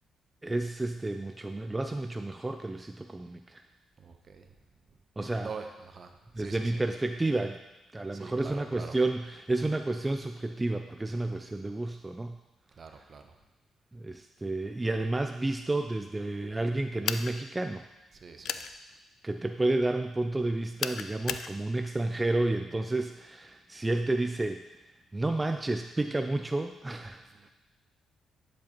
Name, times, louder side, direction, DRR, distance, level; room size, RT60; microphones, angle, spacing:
voice 1, 0.4-3.6 5.2-5.5 6.3-7.6 7.9-12.4 13.9-17.8 19.2-24.8 25.1-27.5, right 2 dB, 20° right, 6 dB, 0.4 m, -31 dB
voice 2, 4.0-4.6 4.9-5.0 5.4-6.8 8.1-9.0 12.8-13.2 18.1-18.7 27.3-27.5, right 5 dB, 50° right, 6 dB, 0.8 m, -45 dB
sound 1, 17.0-17.3 18.4-18.7 20.8-21.5, left 8 dB, 70° left, 0.3 m, -33 dB
10.5 x 5.2 x 3.0 m, 1.0 s
supercardioid pair, 60°, 0 cm